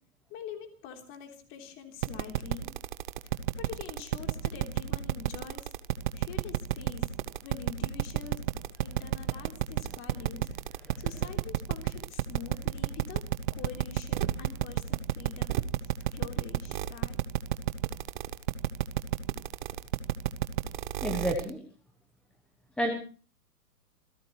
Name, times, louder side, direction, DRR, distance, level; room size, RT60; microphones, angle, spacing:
voice 1, 0.3-2.7 3.6-5.7 6.1-7.1 7.4-8.4 8.8-10.5 11.0-15.6 16.1-17.2, left 7 dB, 25° left, 4 dB, 3.5 m, -45 dB
sound 1, 2.0-21.5, right 13 dB, 30° right, 0.8 m, -30 dB
voice 2, 21.0-21.6 22.8-22.9, equal, ahead, 3 dB, 1.0 m, -30 dB
27.0 x 16.0 x 3.1 m, 0.39 s
hypercardioid pair, 150°, 46 cm